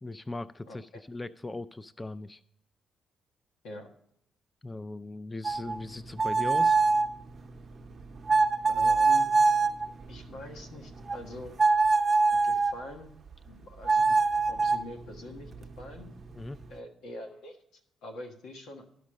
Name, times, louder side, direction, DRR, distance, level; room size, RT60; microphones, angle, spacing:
voice 1, 0.0-2.4 4.6-6.8 16.3-16.6, left 2 dB, 15° left, 16 dB, 0.3 m, -39 dB
voice 2, 0.7-1.0 3.6-3.9 8.7-9.3 10.1-11.6 12.4-13.1 13.4-14.2 14.5-16.1 16.7-18.8, left 1 dB, 85° left, 4 dB, 1.4 m, -44 dB
sound 1, 5.4-12.8 13.9-16.8, right 4 dB, 35° right, 0.7 m, -26 dB
12.5 x 5.2 x 6.3 m, 0.75 s
cardioid pair, 95°, 0 cm